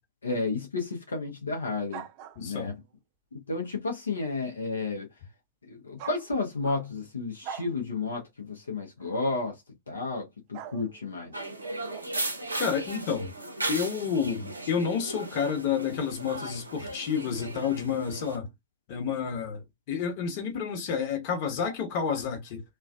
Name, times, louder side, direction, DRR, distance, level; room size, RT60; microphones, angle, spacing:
voice 1, 0.2-2.0 2.4-2.8 3.3-5.1 5.7-11.3, left 3 dB, 80° left, 0.6 m, -32 dB
sound 1, 1.9-2.8 6.0-7.0 7.4-7.7 9.0-9.2 10.5-12.7, right 9 dB, 45° right, 0.3 m, -44 dB
voice 2, 2.4-2.7 12.6-13.3 13.7-18.5 18.9-22.6, left 6 dB, 50° left, 1.0 m, -30 dB
sound 2, 11.3-18.4, right 2 dB, 90° right, 0.6 m, -36 dB
2.4 x 2.3 x 2.3 m
figure-of-eight pair, 95°, 0 cm